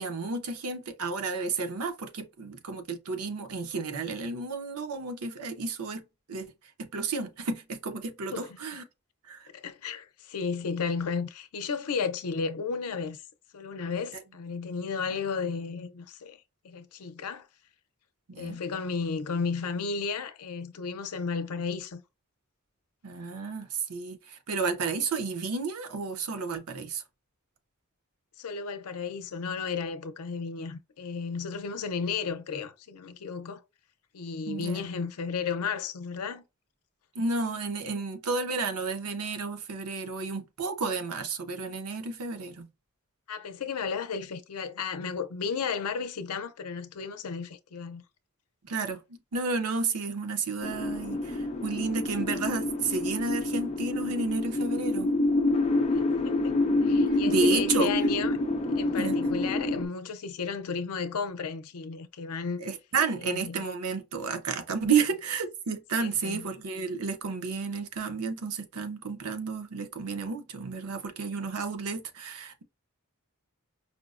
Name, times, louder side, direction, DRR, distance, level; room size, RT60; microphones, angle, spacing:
voice 1, 0.0-6.0 6.3-6.5 6.8-8.8 9.3-9.4 18.3-18.6 23.0-27.0 34.5-34.9 37.2-42.7 48.6-49.0 49.3-55.1 57.3-57.9 59.0-59.2 62.6-72.6, right 4 dB, 90° right, 0.7 m, -31 dB
voice 2, 9.5-13.2 13.5-16.4 16.6-17.5 18.4-22.0 28.4-33.6 34.1-36.4 43.3-48.0 56.2-56.5 56.8-58.4 58.7-62.6 63.2-63.6 64.9-65.0 66.0-66.5, left 5 dB, 85° left, 0.5 m, -33 dB
sound 1, 50.6-59.9, left 2 dB, 30° left, 0.5 m, -27 dB
5.0 x 2.0 x 2.4 m
head